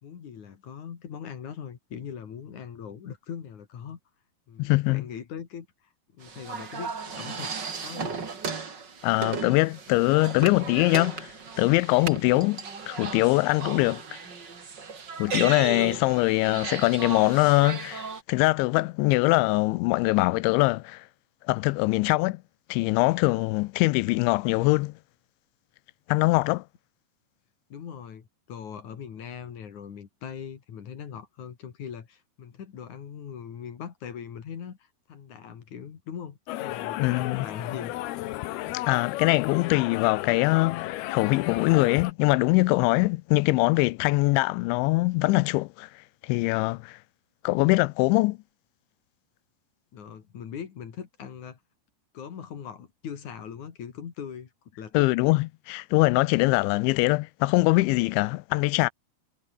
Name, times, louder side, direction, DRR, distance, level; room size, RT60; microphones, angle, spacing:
voice 1, 0.0-4.0 4.5-5.7 6.1-7.5 7.8-8.3 27.7-38.3 49.9-51.6 52.1-55.1, left 7 dB, 45° left, 3.3 m, -40 dB
voice 2, 4.6-5.1 9.0-11.3 11.6-14.0 15.2-21.0 21.5-22.4 22.7-24.9 26.1-26.6 37.0-37.5 38.9-45.9 46.2-47.0 47.4-48.4 54.9-58.9, left 23 dB, 90° left, 2.9 m, -23 dB
sound 1, 6.2-18.2, right 5 dB, 30° right, 2.4 m, -36 dB
sound 2, 36.5-42.1, left 16 dB, 75° left, 2.5 m, -34 dB
omnidirectional pair, 5.3 m